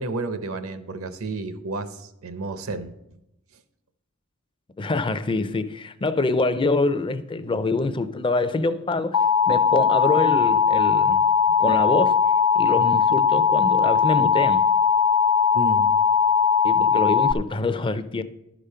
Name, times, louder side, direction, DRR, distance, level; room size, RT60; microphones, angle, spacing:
voice 1, 0.0-2.9 15.5-15.9, right 2 dB, 70° right, 0.7 m, -31 dB
voice 2, 4.8-11.2 11.6-12.2 12.5-14.7 16.6-18.2, left 3 dB, 25° left, 0.4 m, -25 dB
Alarm, 9.1-17.3, left 6 dB, 85° left, 0.4 m, -19 dB
11.5 x 5.1 x 5.6 m
head